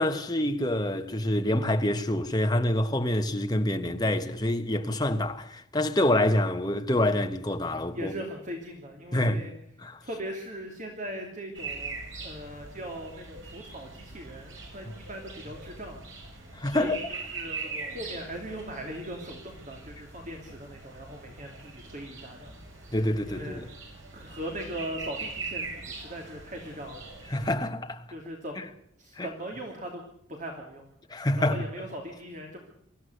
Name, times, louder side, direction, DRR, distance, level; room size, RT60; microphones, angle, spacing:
voice 1, 0.0-8.1 9.1-9.4 9.8-10.0 16.5-17.0 22.9-23.7 27.3-28.0 28.6-28.7 29.2-29.3 31.1-31.6, left 1 dB, 20° left, 1.3 m, -26 dB
voice 2, 7.9-9.5 10.0-23.0 23.2-23.6 24.1-27.1 28.1-28.6 29.0-30.0 30.3-30.8 31.4-32.6, equal, 40° right, 2.9 m, -39 dB
sound 1, 11.5-27.5, right 4 dB, 80° right, 6.0 m, -42 dB
24.0 x 14.5 x 8.0 m
head